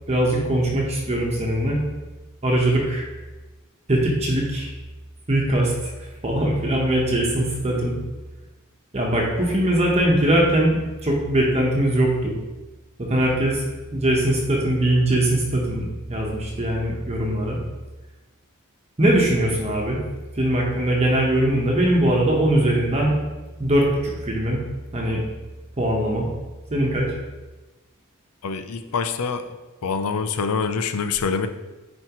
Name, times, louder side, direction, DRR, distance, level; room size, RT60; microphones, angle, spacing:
voice 1, 0.1-1.8 2.4-3.1 3.9-4.7 5.3-8.0 8.9-12.4 13.1-13.6 13.9-17.6 19.0-20.0 20.3-23.1 23.6-24.6 24.9-25.2 25.8-26.3 26.7-27.1, right 1 dB, 30° right, -2 dB, 1.1 m, -21 dB
voice 2, 28.4-29.4 29.8-31.5, left 5 dB, 70° left, 9 dB, 0.5 m, -25 dB
9.5 x 4.5 x 3.0 m, 1.1 s
head